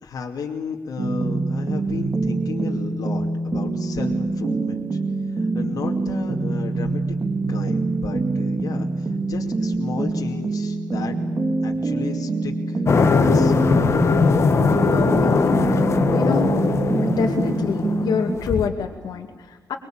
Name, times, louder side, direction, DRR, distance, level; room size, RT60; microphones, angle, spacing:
voice 1, 0.0-5.0 5.3-7.0 7.5-11.1 11.6-12.8 13.1-13.5, left 5 dB, 60° left, 0 dB, 2.5 m, -33 dB
sound 1, 1.0-18.4, right 3 dB, 35° right, 2.4 m, -25 dB
sound 2, 12.9-18.7, left 5 dB, 40° left, 1.6 m, -20 dB
voice 2, 14.9-16.5 17.0-19.8, left 6 dB, 80° left, 1 dB, 2.5 m, -27 dB
24.5 x 22.0 x 8.9 m, 1.4 s
cardioid pair, 110°, 7 cm